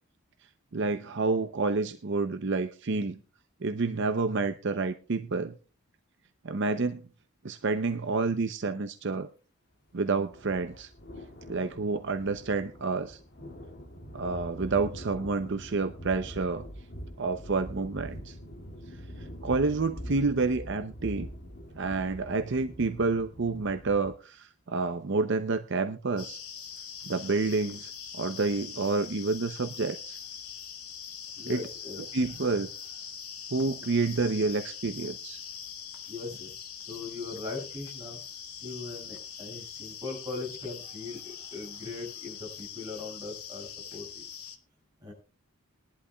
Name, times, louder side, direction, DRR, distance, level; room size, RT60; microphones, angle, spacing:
voice 1, 0.7-3.2 3.6-5.6 6.4-7.0 7.4-9.3 9.9-10.9 11.5-13.2 14.1-16.7 17.2-18.4 18.9-21.3 21.8-26.4 27.1-30.2 31.5-31.6 32.1-32.7 33.5-35.4, right 3 dB, 55° right, 9 dB, 0.6 m, -29 dB
sound 1, 10.2-24.1, equal, 50° left, 2.2 m, -44 dB
sound 2, 26.2-44.6, left 7 dB, 80° left, 1.9 m, -43 dB
voice 2, 31.4-32.0 36.1-36.5 36.8-38.2 38.6-44.2 45.0-45.1, left 3 dB, 15° right, -2 dB, 6.4 m, -40 dB
21.5 x 11.5 x 2.3 m, 0.33 s
head